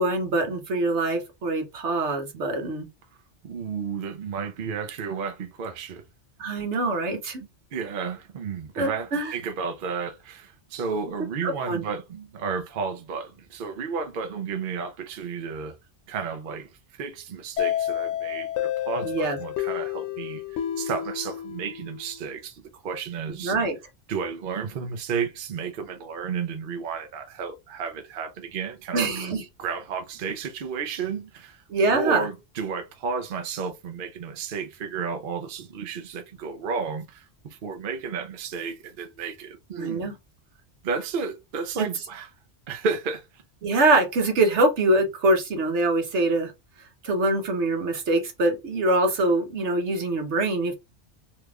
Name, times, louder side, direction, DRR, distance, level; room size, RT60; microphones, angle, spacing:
voice 1, 0.0-2.9 6.4-7.4 8.8-9.3 11.4-11.8 19.0-19.4 23.4-23.8 28.9-29.4 31.7-32.3 39.8-40.1 43.6-46.5 47.0-50.7, right 2 dB, 90° right, 1.2 m, -24 dB
voice 2, 3.4-6.0 7.7-15.8 16.1-23.5 24.1-29.1 29.6-31.6 31.9-40.1 40.8-42.3 42.7-43.4, right 5 dB, 55° right, 0.8 m, -32 dB
sound 1, 17.6-22.2, left 11 dB, 90° left, 0.9 m, -30 dB
3.3 x 2.9 x 2.3 m
omnidirectional pair, 1.1 m